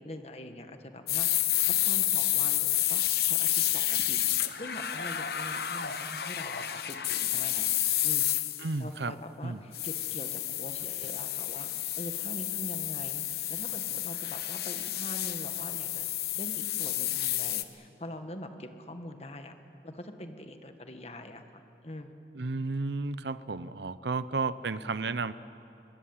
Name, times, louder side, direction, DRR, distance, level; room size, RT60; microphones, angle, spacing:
voice 1, 0.0-7.7 8.0-8.3 8.8-16.1 16.4-19.5 19.8-22.1, left 1 dB, 35° left, 7 dB, 1.5 m, -44 dB
sound 1, 1.1-8.7 9.7-17.6, left 13 dB, 60° left, 1.0 m, -30 dB
voice 2, 8.6-9.1 9.4-9.6 22.3-25.3, right 3 dB, 75° right, 15 dB, 0.8 m, -32 dB
22.5 x 22.0 x 8.8 m, 2.7 s
head